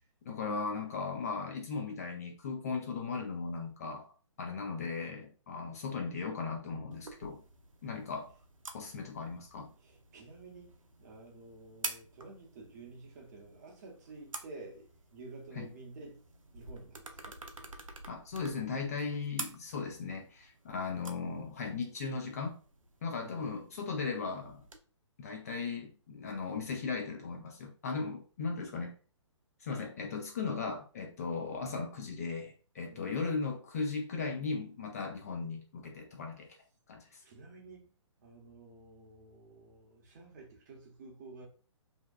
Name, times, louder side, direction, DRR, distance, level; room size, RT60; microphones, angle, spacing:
voice 1, 0.3-4.1 4.4-7.4 7.8-8.3 8.7-9.7 15.6-15.7 18.1-22.6 23.0-24.6 25.2-28.9 29.6-36.5 36.9-37.2, left 4 dB, 30° left, 0.3 m, -37 dB
sound 1, 6.9-24.8, right 3 dB, 85° right, 0.4 m, -49 dB
voice 2, 9.8-16.2 16.5-17.4 23.2-23.9 32.9-33.1 37.2-37.9 38.2-41.5, right 3 dB, 35° right, 0.7 m, -51 dB
2.6 x 2.2 x 2.3 m
figure-of-eight pair, 130°, 17 cm